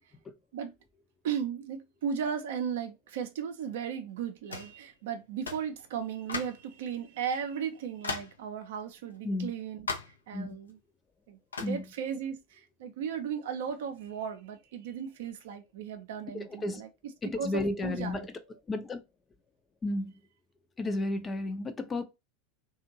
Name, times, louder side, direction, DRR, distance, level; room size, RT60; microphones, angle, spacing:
voice 1, 1.2-10.8 11.3-16.9 17.4-18.6, right 7 dB, 65° right, 0.5 m, -36 dB
sound 1, 4.5-4.8 5.5-5.7 6.3-6.7 7.3-7.4 8.0-8.4 9.9-10.2 11.5-11.8, left 4 dB, 85° left, 0.5 m, -37 dB
voice 2, 16.3-16.8 17.2-18.2 18.7-19.0 19.8-20.1 20.8-22.0, left 2 dB, 20° left, 0.5 m, -32 dB
2.5 x 2.3 x 2.9 m
figure-of-eight pair, 85°, 0 cm